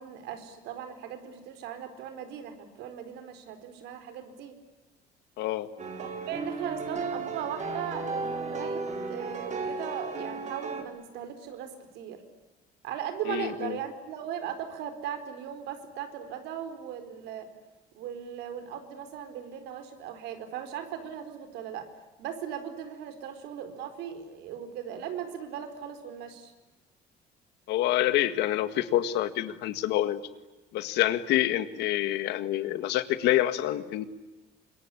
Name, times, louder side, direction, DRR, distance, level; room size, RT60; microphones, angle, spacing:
voice 1, 0.0-4.5 6.0-12.2 12.8-17.5 17.9-21.9 22.2-26.5, right 9 dB, 85° right, 8 dB, 4.5 m, -38 dB
voice 2, 5.4-5.7 13.3-13.8 27.7-30.2 30.7-34.0, left 13 dB, 85° left, 12 dB, 1.8 m, -27 dB
sound 1, 5.8-10.8, right 3 dB, 45° right, 4.9 m, -34 dB
25.5 x 23.0 x 9.9 m, 1.1 s
cardioid pair, 110°, 17 cm